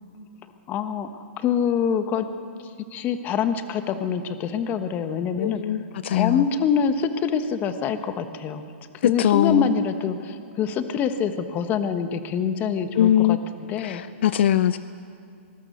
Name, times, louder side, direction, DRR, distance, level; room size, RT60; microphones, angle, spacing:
voice 1, 0.7-1.1 1.4-2.2 2.9-5.6 6.1-8.6 9.0-13.4 13.7-14.0, left 7 dB, 25° left, 9 dB, 1.3 m, -25 dB
voice 2, 5.4-6.4 9.0-9.7 13.0-13.4 13.8-14.8, left 11 dB, 60° left, 15 dB, 0.5 m, -21 dB
26.0 x 20.0 x 6.7 m, 2.5 s
hypercardioid pair, 145°, 7 cm